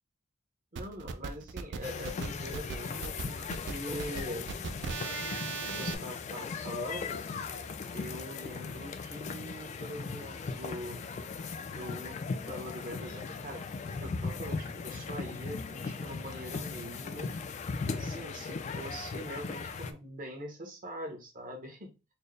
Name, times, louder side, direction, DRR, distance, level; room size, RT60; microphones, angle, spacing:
voice 1, 0.7-4.5 5.6-7.3 7.9-11.0 11.7-13.7 13.9-17.3 17.9-21.9, equal, 45° right, 2 dB, 1.0 m, -43 dB
sound 1, 0.8-5.9, right 5 dB, 60° right, 0.4 m, -38 dB
sound 2, 1.8-19.9, left 4 dB, 35° left, 0.3 m, -38 dB
4.3 x 2.1 x 3.3 m, 0.28 s
head